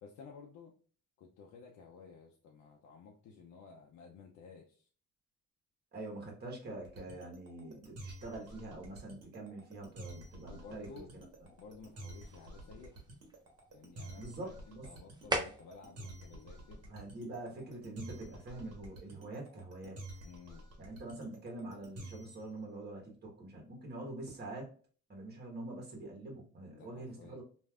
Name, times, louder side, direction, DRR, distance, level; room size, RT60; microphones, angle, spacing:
voice 1, 0.0-0.7 1.2-4.9 10.5-11.1 11.5-13.1 13.7-16.8 20.2-20.7 26.7-27.4, left 5 dB, 70° left, 0 dB, 0.6 m, -54 dB
voice 2, 5.9-11.0 14.2-14.8 16.8-20.0 20.8-24.7 25.1-27.4, right 2 dB, 35° right, 0 dB, 1.3 m, -45 dB
sound 1, 6.8-22.5, right 1 dB, 55° right, 1.2 m, -49 dB
sound 2, 9.7-17.7, right 1 dB, 15° right, 0.6 m, -45 dB
3.2 x 2.6 x 2.3 m, 0.43 s
cardioid pair, 90°, 30 cm